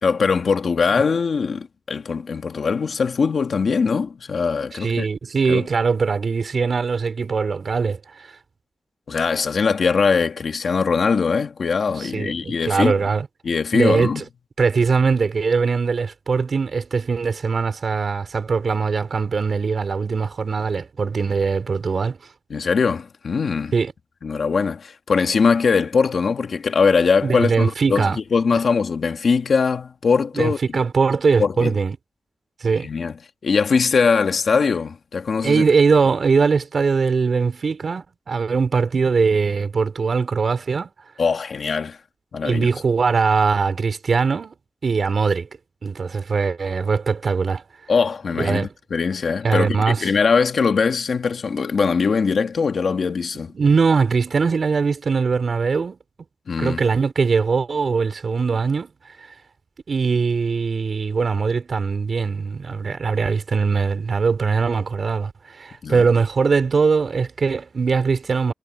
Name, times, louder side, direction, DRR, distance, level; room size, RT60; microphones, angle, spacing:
voice 1, 0.0-5.1 5.5-5.7 9.1-12.9 13.4-14.2 22.5-23.7 24.2-30.6 31.4-31.7 32.8-33.2 33.4-35.6 41.2-42.0 42.3-42.7 47.9-53.5 56.5-56.8 65.8-66.1, left 5 dB, 75° left, 1.7 m, -21 dB
voice 2, 4.8-8.3 12.0-13.3 13.7-14.2 14.6-22.2 23.7-23.9 27.2-28.2 28.5-28.6 30.3-32.0 32.6-32.9 35.4-40.9 42.4-44.6 44.8-45.5 45.8-47.6 48.4-48.7 49.4-50.1 53.5-56.0 56.6-58.9 59.2-59.3 59.9-68.5, right 5 dB, 65° right, 5.2 m, -21 dB
wide cardioid pair, 100°, 0 cm